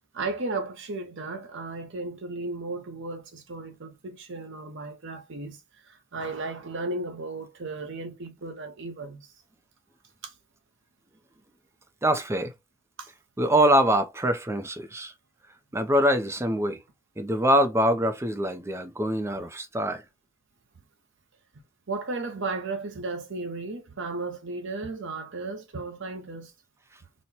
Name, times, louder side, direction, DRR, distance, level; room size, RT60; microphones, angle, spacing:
voice 1, 0.1-5.6 5.9-9.3 10.2-10.3 13.0-13.1 21.9-26.5, right 3 dB, 60° right, 0.8 m, -35 dB
voice 2, 12.0-12.5 13.4-15.1 15.7-16.8 17.2-20.0, right 1 dB, 15° right, 0.5 m, -24 dB
4.2 x 2.1 x 2.8 m
head